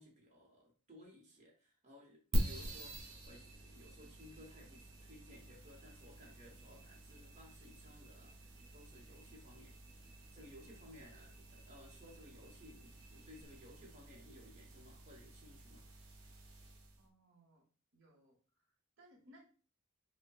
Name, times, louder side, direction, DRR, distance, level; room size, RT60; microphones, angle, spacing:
voice 1, 0.0-15.8, left 1 dB, 35° right, -2 dB, 0.9 m, -59 dB
sound 1, 2.3-17.0, right 1 dB, 85° right, 0.9 m, -45 dB
voice 2, 17.0-17.6 17.9-19.4, equal, 65° right, 0 dB, 1.0 m, -65 dB
5.3 x 2.2 x 2.3 m, 0.38 s
head